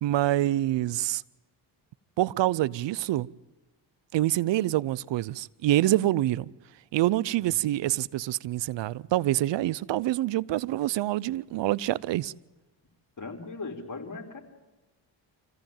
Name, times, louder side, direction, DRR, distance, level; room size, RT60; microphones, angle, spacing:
voice 1, 0.0-1.2 2.2-3.3 4.1-6.5 6.9-12.3, right 15 dB, 75° right, 0.7 m, -26 dB
voice 2, 13.2-14.4, left 3 dB, 40° left, 4.1 m, -38 dB
25.5 x 15.5 x 9.0 m
cardioid pair, 80°, 44 cm